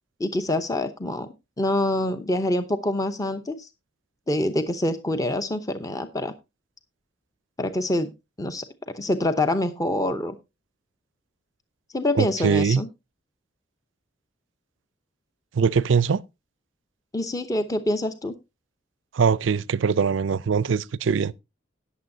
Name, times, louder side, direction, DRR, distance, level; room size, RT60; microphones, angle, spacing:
voice 1, 0.2-1.3 1.6-3.7 4.3-6.3 7.6-8.1 8.4-8.6 8.9-10.4 11.9-12.9 17.1-18.3, left 1 dB, 20° left, 0.7 m, -25 dB
voice 2, 12.1-12.8 15.5-16.2 19.1-21.4, right 6 dB, 75° right, 0.4 m, -22 dB
18.5 x 7.1 x 2.7 m
head